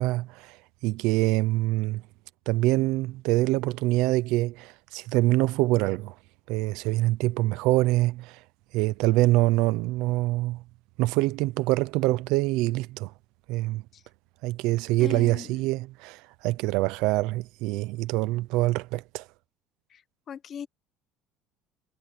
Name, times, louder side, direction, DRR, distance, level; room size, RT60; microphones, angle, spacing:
voice 1, 0.0-2.0 2.5-6.1 6.5-8.4 8.7-10.6 11.0-13.1 13.5-13.8 14.4-19.3, right 19 dB, 70° right, 0.6 m, -25 dB
voice 2, 15.0-15.6 19.9-20.0 20.3-20.7, left 8 dB, 30° left, 0.8 m, -38 dB
cardioid pair, 180°, 0 cm